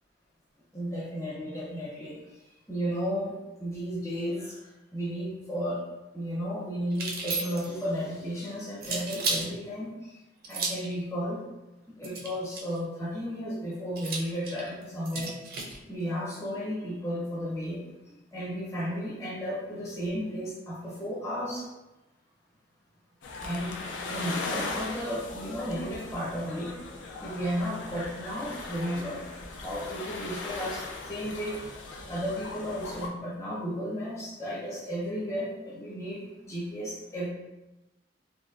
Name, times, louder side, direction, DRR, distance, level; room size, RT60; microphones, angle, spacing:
voice 1, 0.7-2.2 2.7-4.6 4.9-5.8 6.1-10.1 10.5-11.4 11.9-15.3 15.9-17.8 18.3-21.7 23.4-23.7 24.1-26.8 27.2-29.2 29.6-31.6 32.1-37.3, equal, 15° left, -7 dB, 0.8 m, -33 dB
sound 1, 6.9-7.8 8.8-9.5 10.4-10.9 12.0-12.8 14.0-15.8, right 3 dB, 50° right, 0.4 m, -33 dB
sound 2, 23.2-33.1, left 3 dB, 75° left, 0.4 m, -38 dB
3.2 x 2.1 x 2.4 m, 1.0 s
head